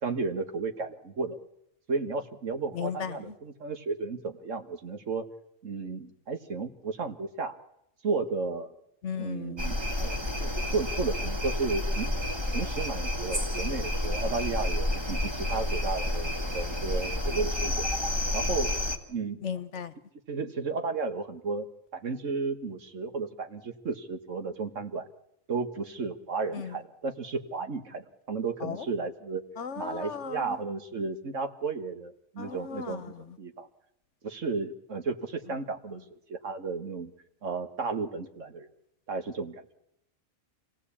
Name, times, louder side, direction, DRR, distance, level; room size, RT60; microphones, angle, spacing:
voice 1, 0.0-1.4 1.9-5.3 5.6-7.5 8.0-8.8 9.2-12.1 12.5-17.9 18.3-18.7 19.1-19.4 20.3-21.7 21.9-25.1 25.5-29.4 29.8-33.7 34.2-36.0 36.3-37.1 37.4-38.7 39.1-39.6, right 4 dB, 70° right, 8 dB, 1.9 m, -33 dB
voice 2, 2.7-3.1 9.0-9.7 19.4-19.9 26.5-26.7 28.6-28.7 29.6-30.6 32.4-33.0, left 7 dB, 65° left, 13 dB, 1.4 m, -35 dB
sound 1, 9.6-19.0, left 1 dB, 20° right, 2.0 m, -30 dB
26.5 x 17.5 x 8.6 m, 0.79 s
omnidirectional pair, 1.3 m